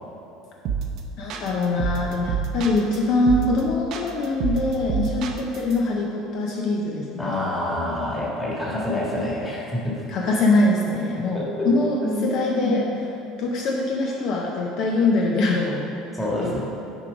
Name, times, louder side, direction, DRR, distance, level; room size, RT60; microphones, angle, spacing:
sound 1, 0.7-1.0 1.3-3.0 3.3-3.6 3.9-5.7, right 7 dB, 50° right, 0.7 m, -27 dB
voice 1, 1.2-7.3 8.7-8.8 10.1-13.1 13.4-15.8 16.4-16.6, left 2 dB, 50° left, -1 dB, 0.7 m, -23 dB
voice 2, 7.2-10.0 11.3-11.7 12.0-12.3 16.1-16.6, left 1 dB, 10° left, -5 dB, 1.6 m, -27 dB
7.4 x 4.6 x 5.0 m, 3.0 s
cardioid pair, 140°, 0 cm